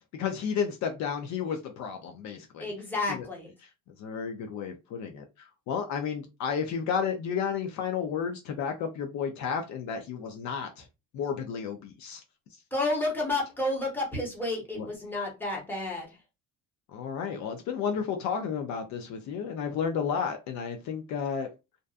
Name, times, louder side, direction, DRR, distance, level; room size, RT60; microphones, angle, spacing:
voice 1, 0.1-2.7 3.1-3.2 4.0-10.9 11.1-12.2 14.7-14.9 16.9-21.5, left 7 dB, 55° left, 0.5 m, -32 dB
voice 2, 2.6-3.5 12.7-16.2, left 2 dB, 5° left, 0.9 m, -31 dB
2.6 x 2.3 x 2.4 m
cardioid pair, 150°, 33 cm